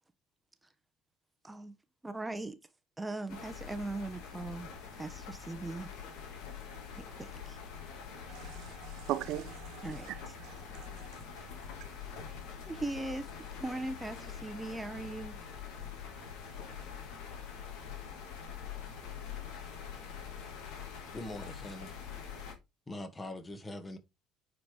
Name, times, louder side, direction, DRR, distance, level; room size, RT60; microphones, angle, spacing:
voice 1, 2.0-2.6 3.0-5.9 6.9-7.6 9.8-10.3 12.6-13.3 13.6-15.4, right 2 dB, 15° right, 1.1 m, -39 dB
sound 1, 3.3-22.5, left 7 dB, 65° left, 2.3 m, -45 dB
voice 2, 8.3-11.1, right 14 dB, 60° right, 0.6 m, -40 dB
voice 3, 21.1-21.9 22.9-24.0, left 1 dB, 20° left, 1.9 m, -42 dB
9.6 x 4.7 x 3.5 m
hypercardioid pair, 60°, 0 cm